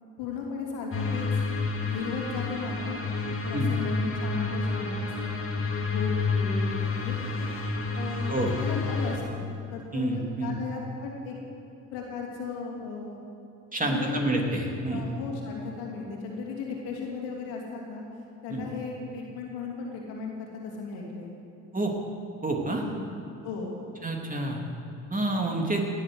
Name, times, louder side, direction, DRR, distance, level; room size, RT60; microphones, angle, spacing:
voice 1, 0.2-1.4 1.8-3.0 3.4-5.4 5.9-7.5 7.9-11.3 11.9-13.2 13.8-14.2 14.5-18.0 18.4-21.3 22.8-23.0 23.4-23.7, left 4 dB, 80° left, -1 dB, 3.0 m, -36 dB
sound 1, 0.9-9.2, left 4 dB, 35° left, 2.4 m, -29 dB
voice 2, 9.9-10.5 13.7-15.0 18.5-18.6 21.7-21.9 22.4-22.8 24.0-24.6 25.1-25.8, right 2 dB, 20° right, 1 dB, 2.9 m, -28 dB
17.5 x 7.7 x 7.9 m, 2.8 s
hypercardioid pair, 55°, 37 cm